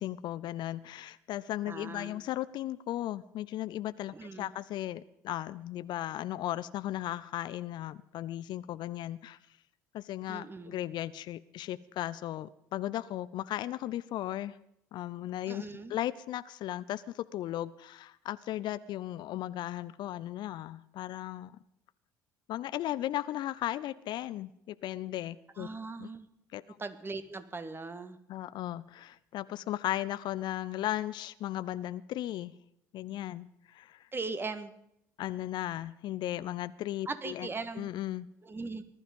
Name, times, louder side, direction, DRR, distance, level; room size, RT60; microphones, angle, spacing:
voice 1, 0.0-9.4 9.9-14.6 14.9-15.6 15.9-21.6 22.5-25.7 26.0-26.1 26.5-26.6 28.3-32.5 32.9-34.0 35.2-37.5 37.8-38.3, left 13 dB, 50° left, 16 dB, 0.6 m, -36 dB
voice 2, 1.7-2.2 4.1-4.5 10.3-10.8 15.5-16.0 25.6-26.3 26.8-28.2 34.1-34.7 37.1-37.9 38.4-38.8, right 3 dB, 25° right, 10 dB, 1.7 m, -39 dB
19.5 x 12.5 x 5.3 m, 0.76 s
figure-of-eight pair, 55°, 9 cm